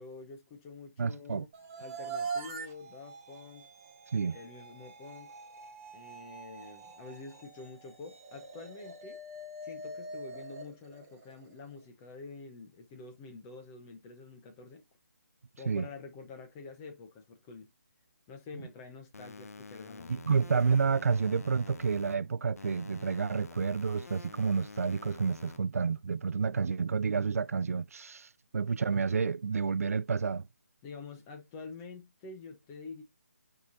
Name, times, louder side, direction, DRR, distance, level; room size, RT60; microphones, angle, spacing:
voice 1, 0.0-1.5 1.8-3.7 4.2-5.3 5.9-9.2 9.6-14.8 15.6-17.7 18.3-20.2 30.8-33.0, left 4 dB, 10° left, 0.8 m, -47 dB
voice 2, 1.0-1.5 4.1-4.4 15.7-15.9 20.1-30.5, right 5 dB, 70° right, 0.4 m, -30 dB
sound 1, 1.5-11.7, right 4 dB, 15° right, 1.2 m, -44 dB
sound 2, 19.1-22.1 22.6-25.6, left 4 dB, 75° left, 0.9 m, -48 dB
9.9 x 4.9 x 2.6 m
hypercardioid pair, 175°, 8 cm